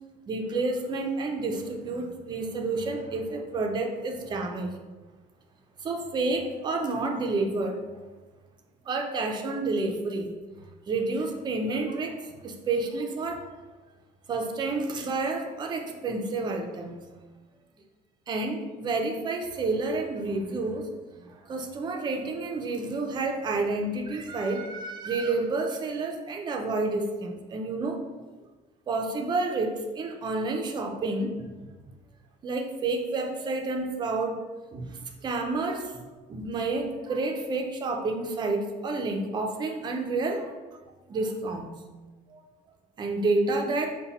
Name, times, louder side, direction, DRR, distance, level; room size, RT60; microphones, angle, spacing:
voice 1, 0.3-4.7 5.8-7.8 8.9-10.3 10.9-13.4 14.3-17.0 18.3-20.9 21.2-28.0 28.9-31.5 32.4-34.4 34.7-35.9 36.3-40.5 41.1-41.7 42.3-42.4 43.0-43.9, right 3 dB, 30° right, 3 dB, 0.5 m, -29 dB
5.4 x 2.2 x 4.1 m, 1.2 s
cardioid pair, 160°, 16 cm